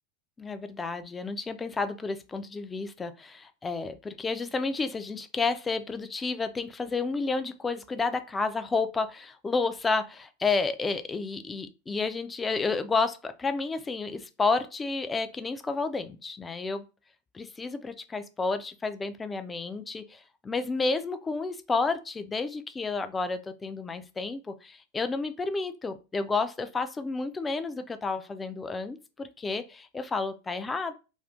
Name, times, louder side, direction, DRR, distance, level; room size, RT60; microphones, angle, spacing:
voice 1, 0.4-16.8 17.3-30.9, left 4 dB, 15° left, 10 dB, 0.3 m, -31 dB
2.5 x 2.4 x 3.4 m, 0.32 s
figure-of-eight pair, 90°, 0 cm